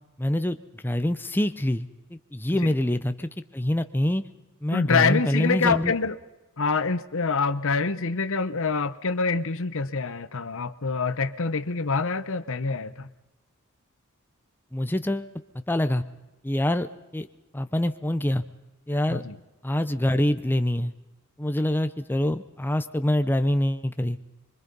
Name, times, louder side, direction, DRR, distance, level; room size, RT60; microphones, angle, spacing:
voice 1, 0.2-0.6 0.8-4.2 4.6-5.9 14.7-15.3 15.7-16.0 16.4-17.3 17.5-18.4 18.9-19.2 19.6-20.9 21.4-24.2, left 1 dB, 10° left, 10 dB, 0.7 m, -25 dB
voice 2, 4.7-6.2 6.6-13.1 19.1-19.4, left 4 dB, 65° left, 13 dB, 1.0 m, -26 dB
25.0 x 24.5 x 5.4 m, 1.0 s
head